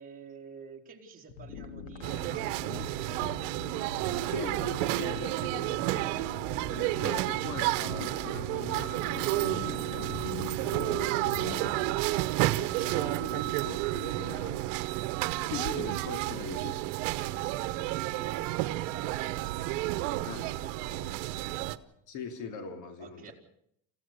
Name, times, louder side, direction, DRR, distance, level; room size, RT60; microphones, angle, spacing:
voice 1, 0.0-2.9 17.2-21.8 23.0-23.3, right 6 dB, 20° right, 0 dB, 3.9 m, -48 dB
sound 1, 1.3-11.9, left 6 dB, 80° left, 3.0 m, -43 dB
sound 2, 2.0-21.8, right 17 dB, 80° right, 1.1 m, -31 dB
voice 2, 4.2-5.7 6.7-16.8 20.2-20.4 22.1-23.3, left 6 dB, 55° left, 7 dB, 2.6 m, -42 dB
26.5 x 15.5 x 6.8 m, 0.71 s
cardioid pair, 135°, 38 cm